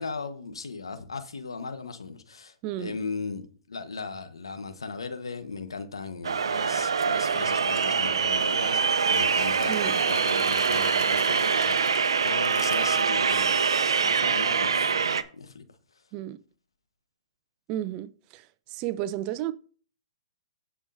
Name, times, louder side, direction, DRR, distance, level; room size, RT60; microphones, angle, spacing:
voice 1, 0.0-11.7 12.2-13.6 14.0-15.7, left 4 dB, 85° left, 1.3 m, -37 dB
voice 2, 2.6-2.9 9.7-10.0 16.1-16.4 17.7-18.4 18.7-19.5, right 13 dB, 35° right, 0.6 m, -32 dB
sound 1, 6.2-15.2, right 6 dB, 80° right, 0.7 m, -24 dB
sound 2, 8.0-13.0, left 9 dB, 40° left, 1.4 m, -45 dB
18.0 x 6.3 x 2.7 m
hypercardioid pair, 125°, 3 cm